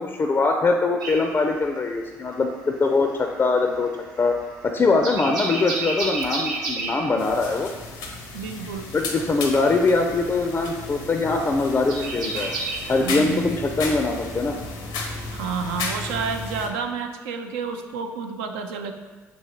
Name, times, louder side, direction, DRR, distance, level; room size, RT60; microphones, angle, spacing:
voice 1, 0.0-3.9 4.2-4.3 4.7-7.7 8.9-12.5 12.9-14.6, left 3 dB, 30° left, 3 dB, 0.4 m, -22 dB
sound 1, 1.0-2.4 2.7-12.8, right 3 dB, 60° right, 0.9 m, -32 dB
sound 2, 7.2-16.7, left 3 dB, 70° left, 0.6 m, -34 dB
voice 2, 8.3-8.9 13.0-13.6 15.3-18.9, right 5 dB, 75° right, 5 dB, 0.4 m, -30 dB
6.2 x 2.9 x 2.8 m, 1.4 s
hypercardioid pair, 55°, 8 cm